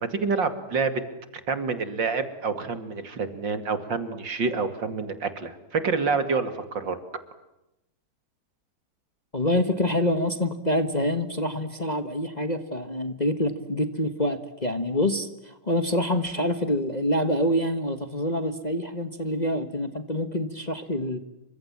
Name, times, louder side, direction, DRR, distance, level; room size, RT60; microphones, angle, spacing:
voice 1, 0.1-0.9 1.5-7.0, right 4 dB, 60° right, 10 dB, 3.0 m, -27 dB
voice 2, 9.3-21.2, left 1 dB, 25° left, 9 dB, 1.5 m, -26 dB
29.0 x 25.0 x 7.4 m, 0.91 s
omnidirectional pair, 2.2 m